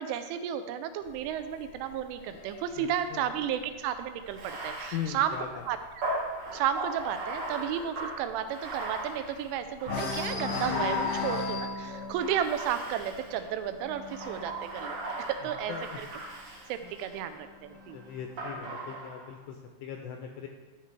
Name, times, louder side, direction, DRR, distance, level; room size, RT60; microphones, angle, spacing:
voice 1, 0.0-5.4 5.7-5.8 6.5-16.1 16.7-18.0, right 9 dB, 85° right, 10 dB, 3.1 m, -33 dB
sound 1, 1.1-4.7 5.1-5.4 5.7-5.8 6.2-9.4 9.8-16.3 17.2-18.2, left 4 dB, 70° left, 1.9 m, -37 dB
voice 2, 2.8-3.3 4.9-5.6 15.7-16.0 16.8-16.9 17.9-20.5, left 8 dB, 90° left, 3 dB, 2.4 m, -39 dB
Bathtub (filling or washing), 4.3-11.6 12.2-13.5 14.0-17.2 18.4-19.3, right 2 dB, 60° right, 1.7 m, -38 dB
13.0 x 6.7 x 3.3 m, 1.3 s
omnidirectional pair, 5.5 m